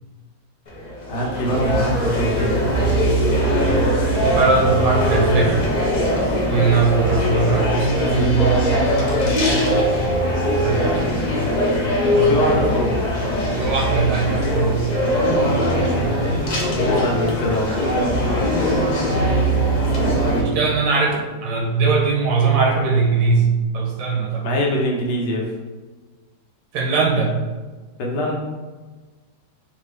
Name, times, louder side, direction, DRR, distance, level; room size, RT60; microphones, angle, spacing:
sound 1, 0.7-20.4, equal, 45° left, 0.5 m, -20 dB
voice 1, 1.1-2.6 12.1-12.9 15.9-16.4 16.7-17.7 24.4-25.5 28.0-28.3, equal, 75° left, -1 dB, 1.4 m, -24 dB
sound 2, 1.1-8.2, right 2 dB, 45° right, 0.9 m, -36 dB
voice 2, 4.3-5.6 6.5-10.3 10.6-10.9 12.1-12.3 13.5-14.9 16.2-16.5 20.3-24.5 26.7-27.4, right 4 dB, 80° right, 0 dB, 1.4 m, -21 dB
4.8 x 2.6 x 3.4 m, 1.3 s
omnidirectional pair, 1.9 m